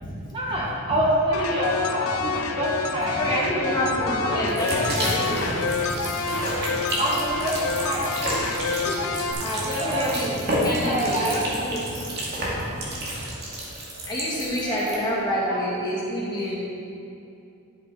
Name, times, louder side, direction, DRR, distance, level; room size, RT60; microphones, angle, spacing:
voice 1, 0.3-3.7 4.1-4.7 7.0-9.2 9.8-10.1 10.8-11.4 14.4-15.0 15.4-15.6, right 1 dB, 25° right, -4 dB, 1.0 m, -28 dB
sound 1, 1.3-9.3, left 4 dB, 70° left, 0.6 m, -28 dB
sound 2, 1.6-13.2, equal, 45° left, 2.0 m, -39 dB
voice 2, 3.1-5.6 9.4-12.0 14.1-16.6, equal, 20° left, -7 dB, 2.2 m, -28 dB
sound 3, 4.5-14.9, right 1 dB, 50° right, 2.1 m, -30 dB
11.0 x 6.9 x 4.0 m, 2.6 s
head